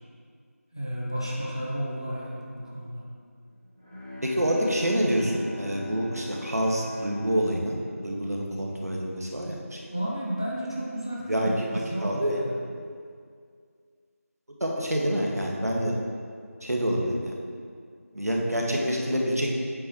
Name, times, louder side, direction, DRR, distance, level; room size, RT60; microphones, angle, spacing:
voice 1, 0.7-3.0 9.9-12.5, equal, 20° left, -4 dB, 0.5 m, -32 dB
Bowed string instrument, 3.4-8.9, left 2 dB, 20° right, 1.0 m, -42 dB
voice 2, 4.2-7.8 8.0-9.8 11.3-11.7 12.0-12.4 14.6-15.9 16.6-17.1 18.1-19.5, equal, 80° right, -1 dB, 1.4 m, -27 dB
8.4 x 6.1 x 2.8 m, 2.2 s
figure-of-eight pair, 180°, 8 cm